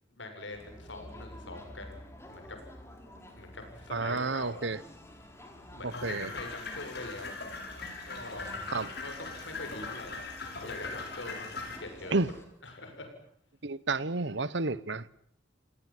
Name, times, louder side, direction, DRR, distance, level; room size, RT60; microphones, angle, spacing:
voice 1, 0.1-2.0 2.3-2.6 3.4-4.6 5.6-7.3 8.0-8.5 9.0-12.2 12.6-13.1, left 2 dB, 75° left, 7.4 m, -44 dB
Crowd, 0.5-12.4, left 1 dB, 15° left, 4.6 m, -50 dB
voice 2, 3.9-4.8 5.8-6.3 8.7-8.9 12.1-12.3 13.6-15.1, right 3 dB, 65° right, 1.0 m, -31 dB
sound 1, 5.9-11.8, left 3 dB, 55° left, 7.0 m, -40 dB
29.0 x 18.0 x 9.3 m
head